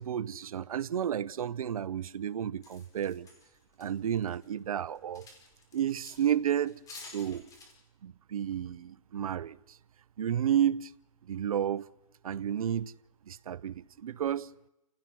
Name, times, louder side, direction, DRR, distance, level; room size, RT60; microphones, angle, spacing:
voice 1, 0.0-3.3 3.8-5.3 5.7-6.8 7.1-7.5 8.0-9.8 10.2-10.9 11.3-11.9 12.2-12.9 13.3-14.5, right 9 dB, 80° right, 0.8 m, -31 dB
sound 1, 2.6-4.5 4.8-6.3 6.7-7.7, left 3 dB, 20° left, 5.2 m, -51 dB
29.5 x 17.5 x 6.2 m
hypercardioid pair, 145°, 18 cm